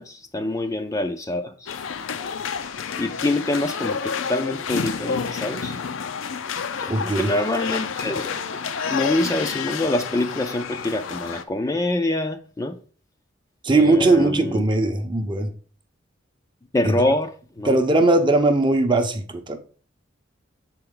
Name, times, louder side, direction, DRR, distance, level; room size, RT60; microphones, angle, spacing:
voice 1, 0.0-1.7 3.0-5.8 7.0-8.3 8.9-12.8 13.7-14.6 16.7-17.3 17.6-17.8, left 1 dB, 15° left, 0.4 m, -25 dB
sound 1, 1.7-11.4, left 6 dB, 85° left, 0.5 m, -29 dB
voice 2, 6.9-7.3 13.6-15.5 16.8-16.9 17.6-19.6, right 2 dB, 25° right, 0.7 m, -19 dB
6.9 x 4.5 x 3.7 m
head